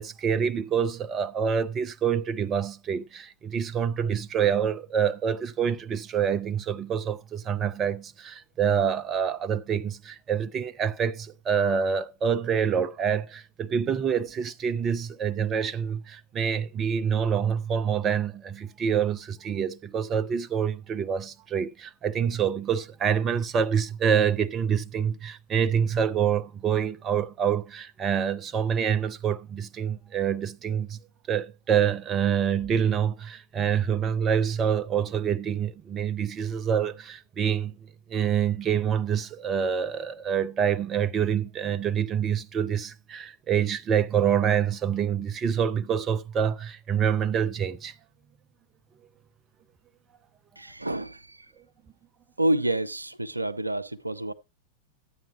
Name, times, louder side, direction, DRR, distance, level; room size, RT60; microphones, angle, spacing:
voice 1, 0.0-31.0 31.3-37.7 38.1-47.9, right 7 dB, 25° right, 0.6 m, -26 dB
voice 2, 50.6-51.5 52.4-54.3, right 1 dB, 85° right, 0.6 m, -28 dB
13.5 x 8.8 x 2.7 m
figure-of-eight pair, 90°, 0 cm